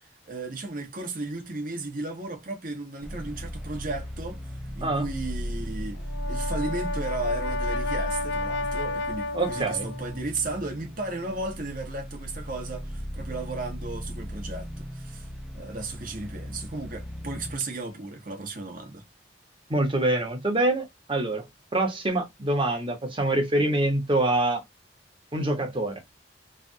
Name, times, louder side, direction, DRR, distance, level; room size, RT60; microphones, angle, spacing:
voice 1, 0.3-4.4 4.7-6.0 6.3-15.3 15.5-19.0, right 2 dB, 50° right, 1.1 m, -34 dB
sound 1, 3.0-17.6, equal, 5° right, 0.6 m, -36 dB
Brass instrument, 6.0-10.2, left 2 dB, 75° left, 0.5 m, -32 dB
voice 2, 9.3-9.9 19.7-21.4 21.7-24.6 25.3-26.0, right 2 dB, 30° right, 1.1 m, -25 dB
3.3 x 2.3 x 2.7 m
head